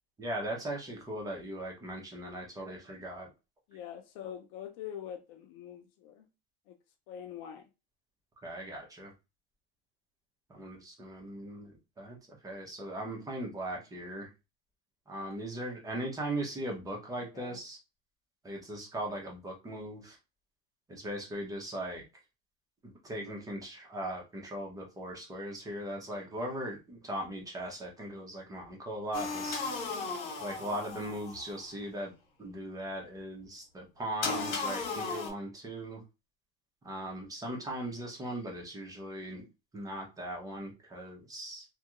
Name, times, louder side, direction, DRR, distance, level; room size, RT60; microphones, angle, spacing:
voice 1, 0.2-3.3 8.4-9.1 10.5-14.3 15.1-17.8 18.4-20.2 20.9-22.0 22.8-29.6 30.4-32.1 32.4-36.0 36.8-39.5 39.7-41.7, right 1 dB, 10° right, 0.7 m, -39 dB
voice 2, 3.7-6.3 6.7-6.8 7.1-7.7 17.3-17.6, left 9 dB, 50° left, 0.5 m, -44 dB
sound 1, 29.1-31.6 34.2-35.3, left 4 dB, 65° left, 1.4 m, -35 dB
2.9 x 2.7 x 2.4 m
supercardioid pair, 145°, 31 cm